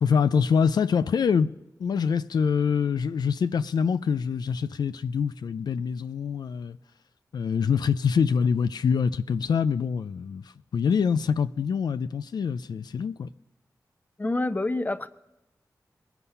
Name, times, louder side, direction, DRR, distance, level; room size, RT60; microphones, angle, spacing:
voice 1, 0.0-1.5 1.8-6.8 7.3-13.3, left 6 dB, 85° left, 0.3 m, -25 dB
voice 2, 14.2-15.1, left 2 dB, 25° left, 0.7 m, -27 dB
20.5 x 7.0 x 5.6 m
wide cardioid pair, 70°, 7 cm